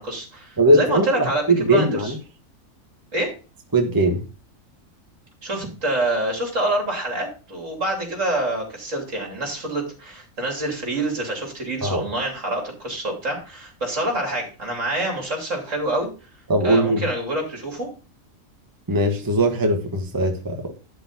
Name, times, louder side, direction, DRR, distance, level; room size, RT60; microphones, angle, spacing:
voice 1, 0.0-2.1 3.1-3.3 5.4-16.1 16.6-17.9, right 1 dB, 70° right, 3.3 m, -26 dB
voice 2, 0.6-2.2 3.7-4.2 11.8-12.0 16.5-17.0 18.9-20.7, right 1 dB, 15° right, 1.2 m, -20 dB
11.0 x 4.0 x 5.9 m
omnidirectional pair, 1.4 m